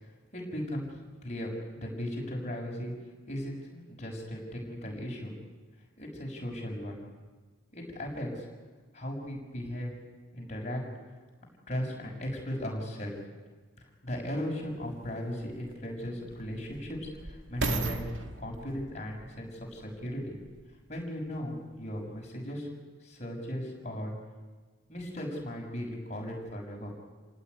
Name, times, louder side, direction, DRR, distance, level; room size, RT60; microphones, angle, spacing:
voice 1, 0.3-2.9 3.3-5.3 6.0-7.0 7.7-8.5 8.9-9.9 10.3-10.8 11.7-13.2 13.8-18.0 18.4-20.3 20.9-22.7 23.0-24.1 24.9-26.9, equal, 35° left, -1 dB, 6.6 m, -37 dB
sound 1, 14.6-14.7 15.4-20.7 21.4-21.5, right 2 dB, 70° right, 2.0 m, -37 dB
29.0 x 18.0 x 9.6 m, 1.4 s
head